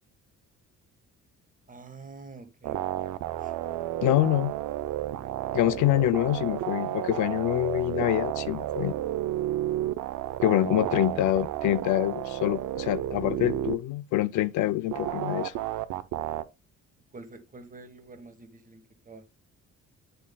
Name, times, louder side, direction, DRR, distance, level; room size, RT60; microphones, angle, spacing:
voice 1, 1.7-3.5 11.3-11.4 17.1-19.2, right 3 dB, 25° right, 1.5 m, -48 dB
sound 1, 2.6-13.7 14.9-16.4, right 13 dB, 80° right, 0.6 m, -32 dB
voice 2, 4.0-4.5 5.5-8.9 10.4-15.5, left 14 dB, 80° left, 0.5 m, -25 dB
8.5 x 5.4 x 2.2 m
cardioid pair, 90°, 30 cm